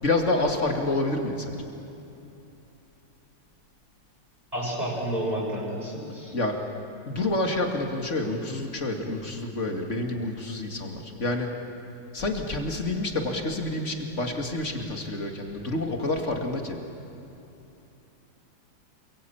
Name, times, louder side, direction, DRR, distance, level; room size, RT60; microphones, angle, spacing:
voice 1, 0.0-1.6 6.3-6.6 7.1-11.5 12.1-16.8, left 2 dB, 35° left, 3 dB, 2.7 m, -28 dB
voice 2, 4.5-6.3, right 1 dB, 20° right, -5 dB, 6.6 m, -30 dB
28.5 x 22.5 x 8.7 m, 2.9 s
omnidirectional pair, 2.2 m